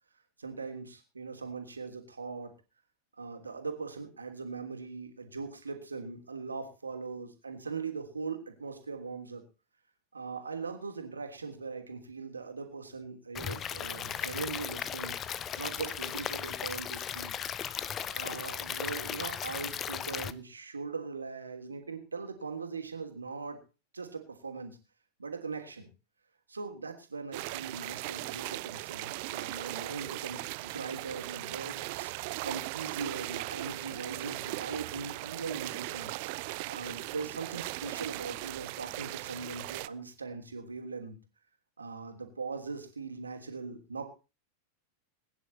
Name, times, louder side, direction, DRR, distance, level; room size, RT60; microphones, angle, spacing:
voice 1, 0.4-2.5 3.2-9.4 10.1-15.2 15.6-17.3 17.8-23.6 23.9-24.8 25.2-25.9 26.5-32.1 32.4-36.1 36.7-41.2 41.8-44.2, right 4 dB, 75° right, 5 dB, 3.1 m, -40 dB
Stream / Liquid, 13.3-20.3, left 9 dB, 25° left, 0.9 m, -36 dB
sound 1, 27.3-39.9, right 23 dB, 45° right, 0.6 m, -38 dB
21.5 x 10.5 x 4.2 m, 0.33 s
figure-of-eight pair, 90°, 0 cm